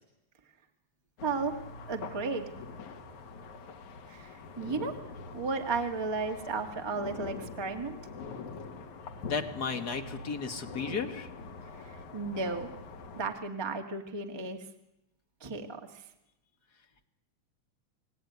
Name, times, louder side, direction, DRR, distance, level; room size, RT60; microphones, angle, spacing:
sound 1, 1.2-13.3, left 4 dB, 80° left, 3.3 m, -44 dB
voice 1, 1.2-1.6 1.9-2.5 4.1-5.0 5.3-8.0 11.8-12.7 13.1-14.6 15.4-16.0, right 4 dB, 10° right, 4 dB, 1.5 m, -34 dB
voice 2, 9.2-11.3, left 5 dB, 40° left, 6 dB, 1.8 m, -34 dB
29.5 x 19.5 x 9.5 m, 0.93 s
omnidirectional pair, 3.3 m